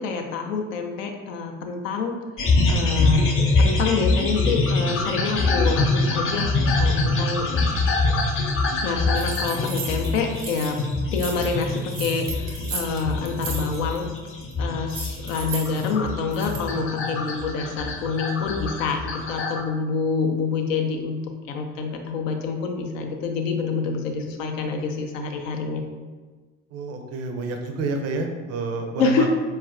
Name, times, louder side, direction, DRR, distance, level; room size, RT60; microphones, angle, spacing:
voice 1, 0.0-2.1 2.7-6.5 6.8-7.5 8.8-10.8 11.1-14.1 14.6-21.2 21.5-25.8 29.0-29.3, left 4 dB, 70° left, 3 dB, 0.5 m, -27 dB
sound 1, 2.4-19.6, left 2 dB, 30° left, 0.6 m, -24 dB
sound 2, 9.1-10.8 11.1-14.0 14.3-14.5 14.9-16.7, right 3 dB, 75° right, 0.7 m, -35 dB
voice 2, 26.7-29.3, right 2 dB, 40° right, 5 dB, 0.4 m, -29 dB
4.1 x 2.3 x 2.4 m, 1.4 s
figure-of-eight pair, 50°, 40 cm